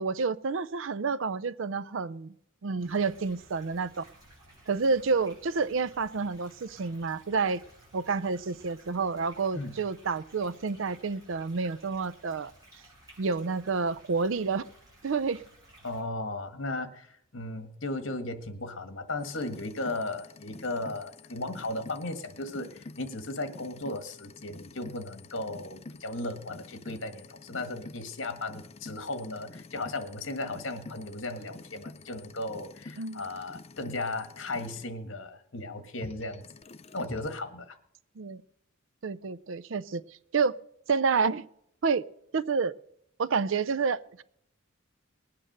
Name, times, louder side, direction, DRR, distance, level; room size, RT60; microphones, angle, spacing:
voice 1, 0.0-2.3 2.6-4.1 4.7-7.6 7.9-12.5 13.2-14.7 15.0-15.4 33.0-33.2 38.2-38.4 39.0-40.0 40.3-40.6 40.9-41.5 41.8-42.1 42.3-42.7 43.2-44.2, right 4 dB, 65° right, 18 dB, 0.5 m, -29 dB
sound 1, 2.8-16.0, right 1 dB, 20° right, 7.7 m, -56 dB
voice 2, 15.8-36.4 36.9-37.8, left 2 dB, 65° left, 9 dB, 1.6 m, -36 dB
cd-dvd printer sound, 19.2-34.8 36.0-37.4, left 3 dB, 30° left, 0.5 m, -48 dB
20.0 x 8.7 x 6.6 m, 0.74 s
head